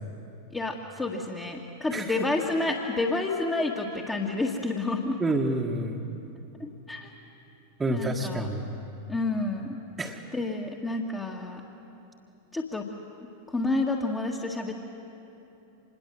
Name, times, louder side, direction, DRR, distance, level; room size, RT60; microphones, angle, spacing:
voice 1, 0.5-5.2 6.6-7.1 7.9-8.5 9.1-9.8 10.3-11.6 12.5-12.9 13.5-14.7, left 2 dB, 15° left, -2 dB, 1.8 m, -29 dB
voice 2, 1.9-2.3 5.2-6.0 7.8-8.7 10.0-10.2, right 2 dB, 15° right, -2 dB, 1.7 m, -28 dB
26.5 x 21.5 x 7.8 m, 2.9 s
figure-of-eight pair, 90°, 0 cm